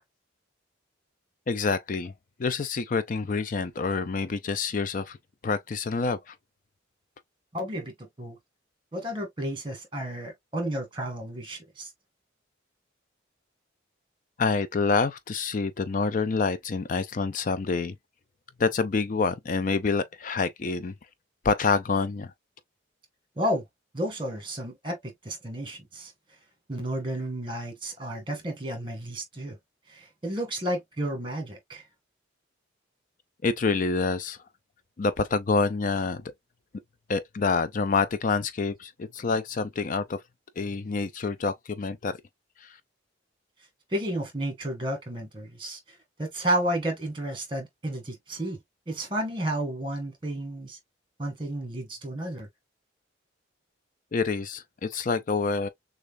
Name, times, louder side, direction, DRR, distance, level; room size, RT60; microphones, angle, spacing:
voice 1, 1.5-2.1 2.4-5.2 5.4-6.3 14.4-18.0 18.6-20.9 21.4-22.3 33.4-34.4 35.0-36.2 37.1-40.2 40.6-42.2 42.6-42.8 54.1-55.7, left 4 dB, 40° left, 0.4 m, -27 dB
voice 2, 7.5-8.4 8.9-11.9 23.4-23.6 23.9-26.1 26.7-29.6 29.9-31.8 43.9-48.6 48.9-50.8 51.2-52.5, right 1 dB, 25° right, 2.0 m, -32 dB
6.5 x 2.4 x 2.5 m
head